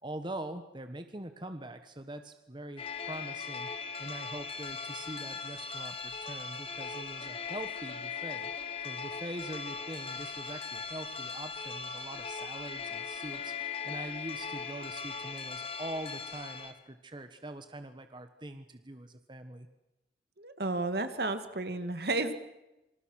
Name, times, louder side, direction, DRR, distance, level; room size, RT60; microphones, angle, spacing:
voice 1, 0.0-19.7, right 1 dB, 25° right, 8 dB, 1.4 m, -43 dB
sound 1, 2.8-16.7, left 5 dB, 30° left, 2.2 m, -39 dB
voice 2, 20.4-22.3, right 2 dB, 60° right, 9 dB, 2.1 m, -32 dB
27.5 x 25.5 x 6.4 m, 0.98 s
head